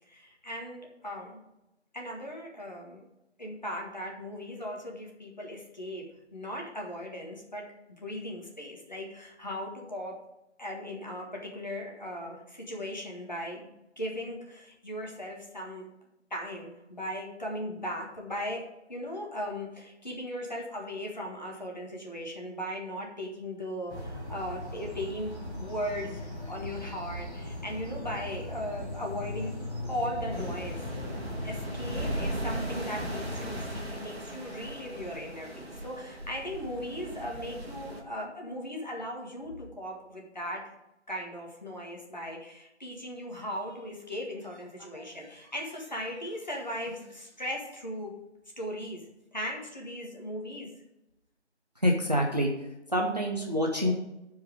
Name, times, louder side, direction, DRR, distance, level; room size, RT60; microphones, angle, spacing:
voice 1, 0.1-1.4 1.9-3.0 3.4-7.7 8.0-10.2 10.6-13.7 14.0-15.9 16.3-29.5 29.9-30.8 31.4-40.7 41.1-48.2 48.6-49.0 49.3-50.7, equal, 40° left, -1 dB, 1.6 m, -38 dB
sound 1, 23.9-33.8, left 1 dB, 20° left, 2.2 m, -38 dB
sound 2, 30.3-38.0, right 1 dB, 60° right, 1.5 m, -38 dB
voice 2, 51.8-52.5 52.9-53.9, equal, 35° right, 1 dB, 0.9 m, -27 dB
12.0 x 4.8 x 5.1 m, 0.90 s
figure-of-eight pair, 170°, 35 cm